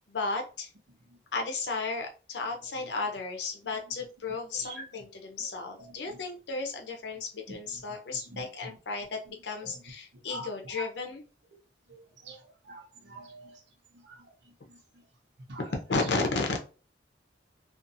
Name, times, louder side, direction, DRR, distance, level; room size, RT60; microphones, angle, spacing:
voice 1, 0.1-0.7 1.3-11.2 15.6-16.6, left 3 dB, 80° left, 3 dB, 0.6 m, -34 dB
voice 2, 8.1-8.7 10.3-10.5 10.7-10.8 11.9-12.0 12.2-12.4 12.7-13.6 14.1-14.2 14.7-14.8 15.5-15.6, right 3 dB, 85° right, 0 dB, 0.8 m, -43 dB
2.5 x 2.4 x 2.6 m, 0.34 s
head